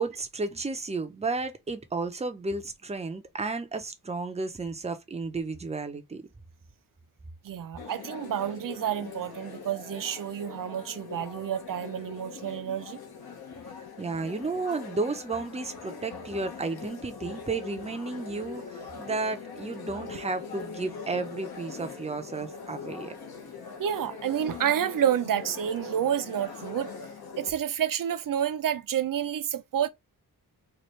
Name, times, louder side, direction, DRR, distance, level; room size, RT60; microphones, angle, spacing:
voice 1, 0.0-6.3 14.0-23.1, right 3 dB, 15° right, 0.6 m, -33 dB
voice 2, 7.4-13.0 23.8-26.9 27.4-29.9, right 9 dB, 60° right, 0.6 m, -29 dB
sound 1, 7.8-27.5, left 5 dB, 70° left, 1.2 m, -42 dB
4.4 x 2.5 x 3.1 m
wide cardioid pair, 145°, 38 cm